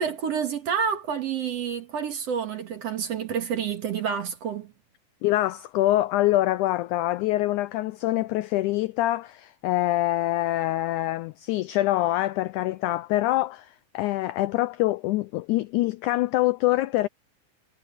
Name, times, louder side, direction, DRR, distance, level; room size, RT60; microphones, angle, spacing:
voice 1, 0.0-4.7, right 7 dB, 55° right, 2.3 m, -28 dB
voice 2, 5.2-17.1, left 16 dB, 85° left, 1.7 m, -25 dB
omnidirectional pair, 4.1 m